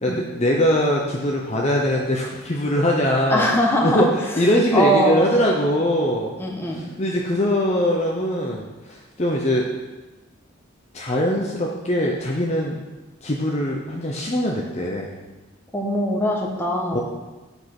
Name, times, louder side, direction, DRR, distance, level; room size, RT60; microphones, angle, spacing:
voice 1, 0.0-3.5 3.8-6.3 6.7-9.7 10.9-12.8 13.2-15.2 16.9-17.0, equal, 35° left, -1 dB, 0.8 m, -22 dB
voice 2, 3.3-4.0 4.7-5.3 6.4-6.8 15.7-17.0, equal, 10° left, -1 dB, 1.2 m, -21 dB
8.5 x 5.4 x 6.0 m, 1.2 s
head